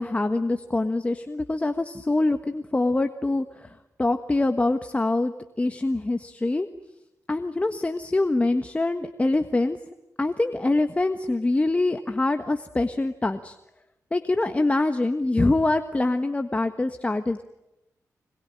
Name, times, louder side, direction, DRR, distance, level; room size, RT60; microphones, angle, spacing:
voice 1, 0.0-3.7 4.0-5.3 5.6-6.7 7.3-9.8 10.2-13.6 14.1-17.4, left 2 dB, 20° left, 8 dB, 1.4 m, -24 dB
26.0 x 21.5 x 10.0 m, 0.89 s
cardioid pair, 90°, 6 cm